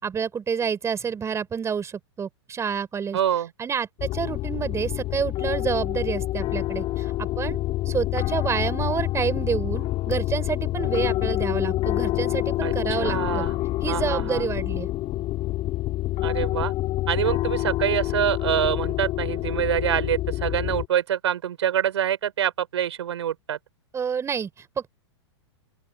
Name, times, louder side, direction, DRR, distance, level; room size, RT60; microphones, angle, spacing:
voice 1, 0.0-3.2 3.6-7.6 7.9-13.5 13.8-14.9 23.9-24.9, right 7 dB, 20° right, 5.5 m, -28 dB
voice 2, 3.1-3.5 12.6-12.7 13.0-13.6 13.9-14.5 16.2-16.7 17.1-23.6, right 10 dB, 70° right, 5.9 m, -25 dB
sound 1, 4.0-20.9, left 16 dB, 35° left, 5.5 m, -27 dB
open air
hypercardioid pair, 110°, 15 cm